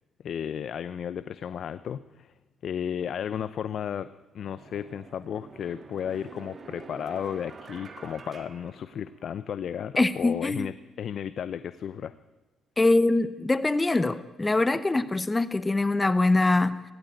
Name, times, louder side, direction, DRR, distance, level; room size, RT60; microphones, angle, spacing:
voice 1, 0.2-2.3 2.6-4.1 4.3-12.1, left 8 dB, 60° left, 0.7 m, -34 dB
sound 1, 4.4-9.5, right 4 dB, 40° right, 1.7 m, -47 dB
voice 2, 10.0-10.7 12.8-16.8, left 2 dB, 20° left, 0.9 m, -23 dB
17.5 x 17.0 x 9.0 m
cardioid pair, 90°, 0 cm